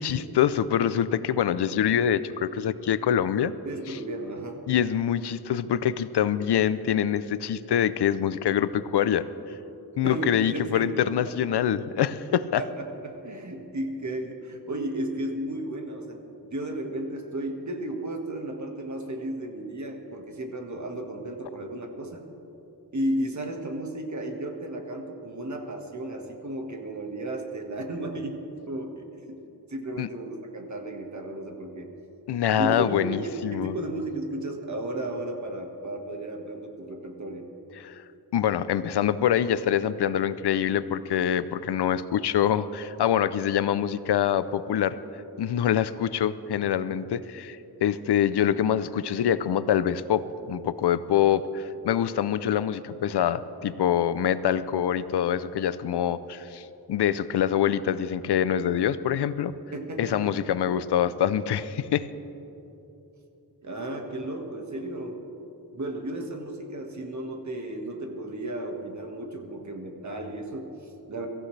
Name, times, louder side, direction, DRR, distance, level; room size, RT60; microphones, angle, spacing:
voice 1, 0.0-3.5 3.9-4.0 4.7-9.2 10.0-12.6 30.0-30.1 32.3-33.7 37.8-37.9 38.3-45.0 45.4-59.5 60.0-62.1, left 9 dB, 85° left, 15 dB, 0.6 m, -25 dB
voice 2, 3.6-4.6 10.0-11.4 12.6-22.2 22.9-29.4 29.7-31.9 32.6-37.5 59.7-60.4 63.6-65.2 65.7-71.3, right 1 dB, 45° right, 3 dB, 1.7 m, -34 dB
23.5 x 15.0 x 3.3 m, 3.0 s
wide cardioid pair, 110°, 39 cm